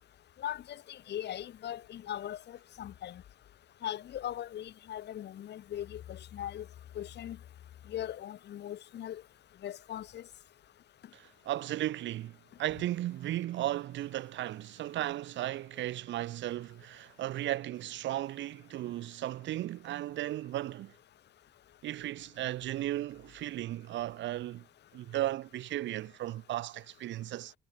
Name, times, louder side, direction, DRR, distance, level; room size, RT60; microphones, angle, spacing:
voice 1, 0.4-3.2 3.8-6.6 7.0-7.4 7.9-9.2 9.6-10.2, left 11 dB, 65° left, 7.5 m, -39 dB
voice 2, 11.1-20.9 21.8-24.6 24.9-27.5, right 14 dB, 90° right, 3.5 m, -35 dB
cardioid pair, 140°, 18 cm